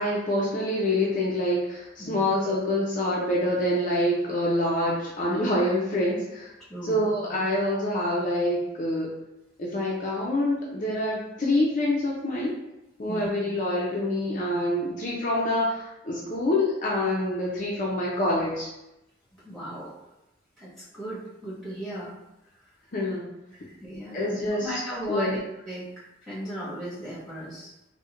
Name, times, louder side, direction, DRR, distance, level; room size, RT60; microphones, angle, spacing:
voice 1, 0.0-6.5 6.8-9.1 9.6-12.5 13.0-18.7 22.9-23.4 24.1-24.7 25.1-25.3, left 1 dB, 45° left, -5 dB, 0.5 m, -26 dB
voice 2, 2.0-2.3 6.7-7.1 13.1-13.3 19.4-19.9 20.6-22.1 22.5-22.7 23.5-25.9 26.2-27.7, right 1 dB, ahead, -10 dB, 1.4 m, -37 dB
4.2 x 2.1 x 2.4 m, 0.91 s
head